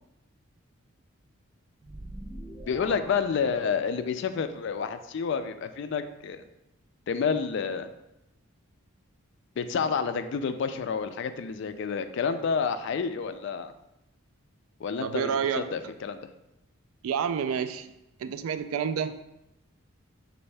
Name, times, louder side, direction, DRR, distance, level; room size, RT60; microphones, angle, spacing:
sound 1, 1.8-4.3, right 1 dB, 15° right, 0.4 m, -44 dB
voice 1, 2.7-6.4 7.1-7.9 9.6-13.7 14.8-15.3 15.6-16.2, left 6 dB, 55° left, 10 dB, 0.3 m, -29 dB
voice 2, 15.0-15.8 17.0-17.9 18.2-19.2, right 7 dB, 80° right, 11 dB, 0.3 m, -29 dB
6.3 x 2.6 x 3.2 m, 0.88 s
head